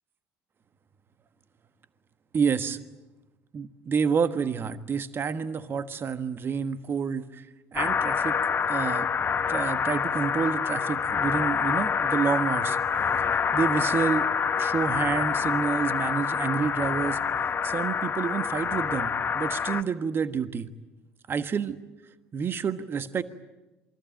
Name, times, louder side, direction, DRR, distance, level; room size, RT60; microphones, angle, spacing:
voice 1, 2.3-2.8 3.5-7.4 7.7-8.4 8.7-9.1 9.5-12.8 13.2-14.3 14.6-17.2 17.6-20.7 21.3-21.8 22.3-23.2, right 6 dB, 35° right, 11 dB, 1.4 m, -29 dB
sound 1, 7.8-19.8, left 6 dB, 35° left, 1.2 m, -27 dB
27.5 x 22.5 x 9.0 m, 1.1 s
hypercardioid pair, 65°, 6 cm